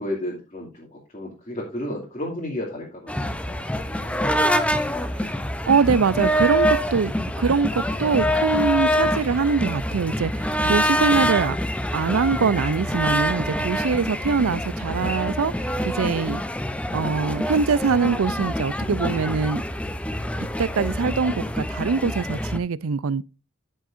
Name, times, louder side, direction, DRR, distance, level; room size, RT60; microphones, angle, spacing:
voice 1, 0.0-4.2 4.7-5.2, left 1 dB, 35° left, 2.5 m, -33 dB
sound 1, 3.1-22.6, equal, 5° left, 0.6 m, -25 dB
voice 2, 5.7-11.6 11.9-15.7 16.0-16.4 16.9-19.6 20.6-23.2, right 5 dB, 90° right, 0.5 m, -23 dB
13.5 x 6.4 x 2.5 m
head